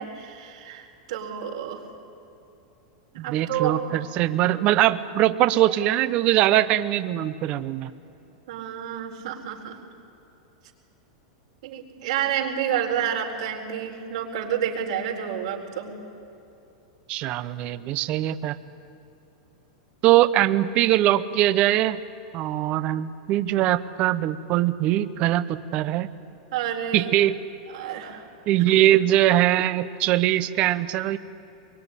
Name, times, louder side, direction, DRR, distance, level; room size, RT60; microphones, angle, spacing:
voice 1, 0.0-1.8 3.1-3.8 8.5-9.8 11.6-16.0 26.5-27.1 27.7-28.3, right 9 dB, 70° right, 1 dB, 4.2 m, -29 dB
voice 2, 3.2-7.9 17.1-18.6 20.0-22.0 22.3-26.1 26.9-27.4 28.5-31.2, right 14 dB, 35° right, 14 dB, 0.8 m, -22 dB
23.5 x 22.5 x 9.9 m, 2.8 s
supercardioid pair, 160°, 4 cm